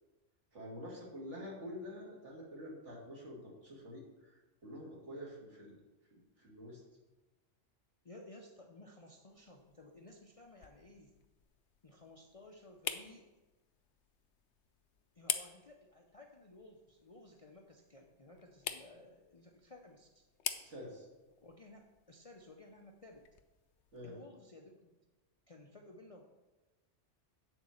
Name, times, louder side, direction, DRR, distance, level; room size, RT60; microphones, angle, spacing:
voice 1, 0.5-5.8 6.1-6.8 20.6-21.1 23.9-24.1, equal, 75° right, -3 dB, 2.5 m, -48 dB
voice 2, 8.0-11.1 11.8-13.2 15.1-20.2 21.4-23.3 24.0-24.9 25.5-26.2, left 2 dB, 35° left, 1 dB, 0.6 m, -56 dB
sound 1, 9.3-24.1, left 9 dB, 75° left, 0.9 m, -47 dB
8.9 x 4.2 x 7.1 m, 1.1 s
omnidirectional pair, 1.2 m